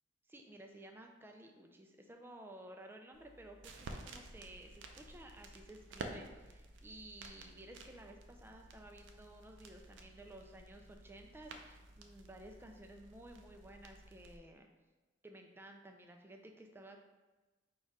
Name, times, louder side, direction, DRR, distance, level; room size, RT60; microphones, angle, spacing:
voice 1, 0.3-14.7 15.2-17.0, right 1 dB, 10° right, 3 dB, 0.3 m, -54 dB
sound 1, 3.1-14.4, right 2 dB, 70° right, 0.5 m, -52 dB
4.4 x 2.4 x 4.6 m, 1.2 s
head